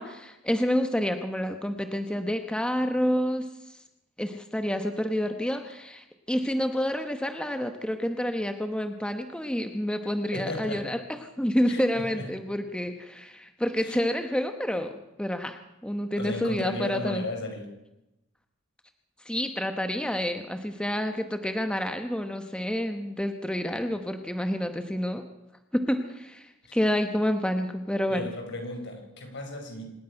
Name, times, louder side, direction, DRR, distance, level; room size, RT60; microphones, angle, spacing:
voice 1, 0.0-3.8 4.2-11.0 11.4-17.2 19.2-25.2 25.7-28.3, equal, 5° left, 6 dB, 1.0 m, -29 dB
voice 2, 10.3-10.8 11.7-12.3 13.8-14.0 16.2-17.7 26.6-26.8 28.1-29.8, left 1 dB, 60° left, 4 dB, 5.4 m, -35 dB
26.0 x 10.0 x 9.9 m, 0.92 s
head